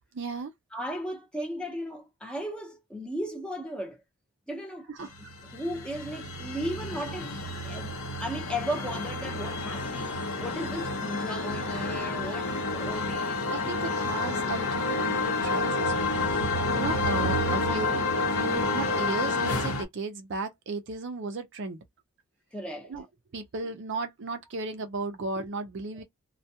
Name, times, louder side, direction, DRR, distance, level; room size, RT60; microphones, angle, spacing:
voice 1, 0.1-0.5 4.9-5.1 13.5-16.2 16.7-18.0 18.3-21.8 22.8-23.1 23.3-26.0, right 3 dB, 55° right, 0.5 m, -35 dB
voice 2, 0.7-4.0 4.5-7.9 8.2-13.7 17.7-18.0 22.5-22.9, equal, 5° left, 0.7 m, -36 dB
sound 1, 5.1-19.8, left 2 dB, 75° left, 0.8 m, -29 dB
2.2 x 2.2 x 2.7 m
head